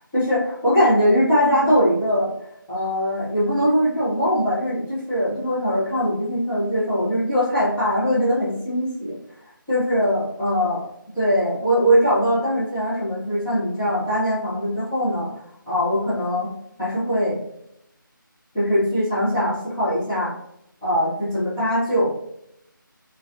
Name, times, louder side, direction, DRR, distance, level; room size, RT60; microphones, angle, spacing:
voice 1, 0.1-2.3 2.7-9.2 9.7-10.8 11.1-15.3 15.7-16.5 16.8-17.4 18.5-20.3 20.8-22.1, equal, 5° left, -12 dB, 0.4 m, -21 dB
2.5 x 2.1 x 2.5 m, 0.78 s
figure-of-eight pair, 165°, 11 cm